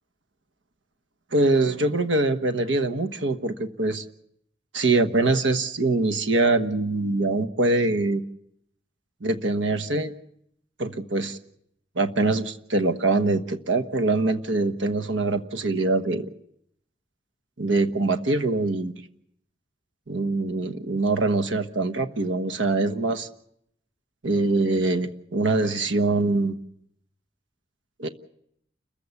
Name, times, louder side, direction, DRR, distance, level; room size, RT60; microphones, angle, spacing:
voice 1, 1.3-4.0 4.7-8.2 9.2-10.1 10.8-11.4 12.0-16.3 17.6-18.9 20.1-23.3 24.2-26.5 28.0-28.1, right 2 dB, 85° right, 9 dB, 1.3 m, -23 dB
29.5 x 15.0 x 7.1 m, 0.74 s
head